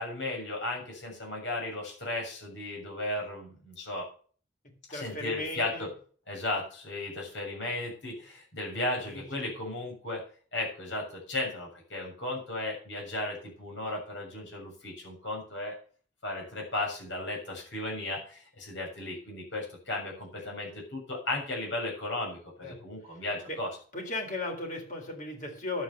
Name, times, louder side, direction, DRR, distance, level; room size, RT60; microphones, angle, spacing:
voice 1, 0.0-4.1 4.9-5.9 6.3-10.2 10.5-15.8 16.2-23.7, left 2 dB, 75° left, 0 dB, 7.0 m, -35 dB
voice 2, 4.9-5.9 8.7-9.5 22.6-22.8 23.5-23.6 23.9-25.8, left 2 dB, 45° left, 3 dB, 4.0 m, -37 dB
11.0 x 8.3 x 6.9 m, 0.43 s
head